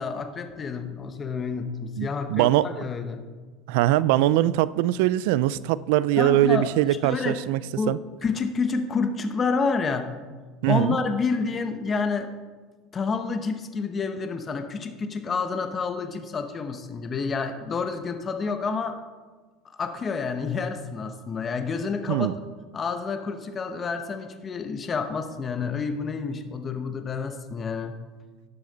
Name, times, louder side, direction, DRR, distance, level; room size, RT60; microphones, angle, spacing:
voice 1, 0.0-3.2 6.2-6.7 7.0-7.4 7.8-10.2 10.7-12.3 12.9-19.0 19.8-22.3 22.7-28.0, left 5 dB, 25° left, 7 dB, 0.8 m, -29 dB
voice 2, 2.0-2.7 3.7-7.6 7.9-8.0 10.6-11.0 22.1-22.3, right 14 dB, 80° right, 19 dB, 0.4 m, -22 dB
12.0 x 9.8 x 4.0 m, 1.4 s
supercardioid pair, 135°, 0 cm